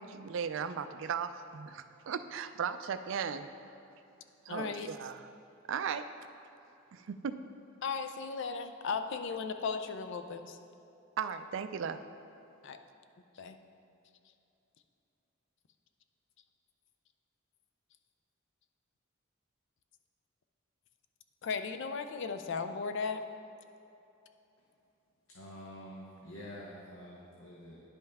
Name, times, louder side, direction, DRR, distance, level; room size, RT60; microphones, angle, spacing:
voice 1, 0.0-3.5 4.5-5.3 5.7-6.1 6.9-7.4 11.2-12.0, right 7 dB, 65° right, 11 dB, 0.3 m, -36 dB
voice 2, 4.5-4.9 7.8-10.6 12.6-12.8 13.4-13.6 21.4-23.2, left 5 dB, 60° left, 8 dB, 0.4 m, -36 dB
voice 3, 25.3-27.8, equal, 80° left, -3 dB, 0.9 m, -47 dB
10.5 x 5.5 x 3.5 m, 2.8 s
head